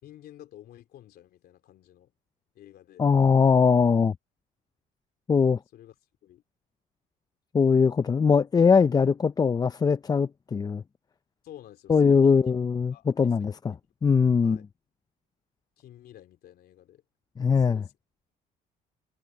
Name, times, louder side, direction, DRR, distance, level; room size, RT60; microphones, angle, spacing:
voice 1, 0.0-2.1 2.5-3.1 5.7-5.9 6.2-6.4 11.4-12.5 12.9-13.3 13.7-13.8 14.4-14.6 15.8-17.0 17.6-17.9, left 12 dB, 70° left, 3.2 m, -50 dB
voice 2, 3.0-4.1 5.3-5.6 7.5-10.8 11.9-13.8 14.0-14.6 17.4-17.8, left 5 dB, 25° left, 0.5 m, -21 dB
cardioid pair, 110°, 17 cm